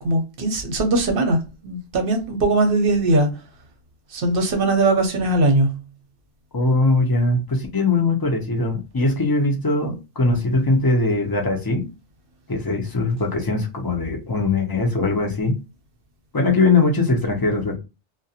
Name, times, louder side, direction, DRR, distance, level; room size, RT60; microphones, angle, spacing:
voice 1, 0.0-3.3 4.1-5.8, right 2 dB, 60° right, 0.8 m, -20 dB
voice 2, 6.5-11.9 12.5-15.6 16.3-17.8, left 3 dB, 30° left, 0.4 m, -21 dB
2.4 x 2.2 x 2.7 m
omnidirectional pair, 1.2 m